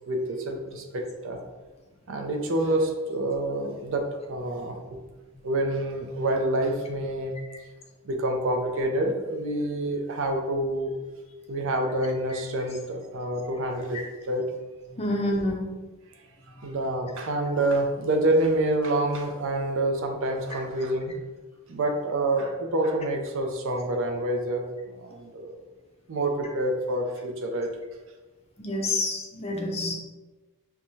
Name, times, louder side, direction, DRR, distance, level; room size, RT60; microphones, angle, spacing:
voice 1, 0.1-1.4 2.1-5.0 5.4-7.3 8.0-10.9 11.5-14.5 16.2-16.3 16.6-21.1 21.7-25.6 26.1-27.7, right 1 dB, 60° right, 3 dB, 0.5 m, -27 dB
voice 2, 15.0-15.6 28.6-29.9, left 1 dB, 25° left, 0 dB, 0.5 m, -28 dB
4.5 x 2.2 x 2.7 m, 1.2 s
head